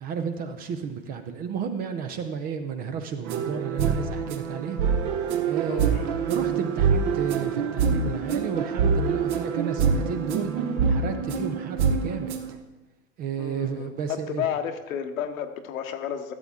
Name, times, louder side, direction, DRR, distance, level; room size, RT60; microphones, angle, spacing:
voice 1, 0.0-4.8 5.5-10.5 10.9-12.6 13.2-14.5, right 6 dB, 20° right, 8 dB, 0.5 m, -32 dB
sound 1, 3.2-12.6, right 6 dB, 45° right, 1.1 m, -25 dB
voice 2, 5.7-6.0 13.4-16.3, left 9 dB, 75° left, 7 dB, 1.2 m, -32 dB
13.0 x 8.0 x 3.6 m, 1.1 s
hypercardioid pair, 135°, 41 cm